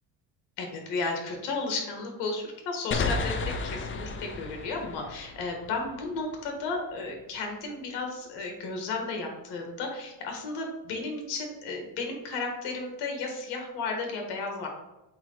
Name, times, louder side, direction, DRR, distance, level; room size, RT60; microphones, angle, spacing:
voice 1, 0.6-3.4 3.6-14.7, left 3 dB, 80° left, 2 dB, 1.7 m, -33 dB
sound 1, 2.9-6.4, left 4 dB, 30° left, 0.6 m, -33 dB
8.0 x 3.0 x 3.9 m, 0.97 s
cardioid pair, 105°, 40 cm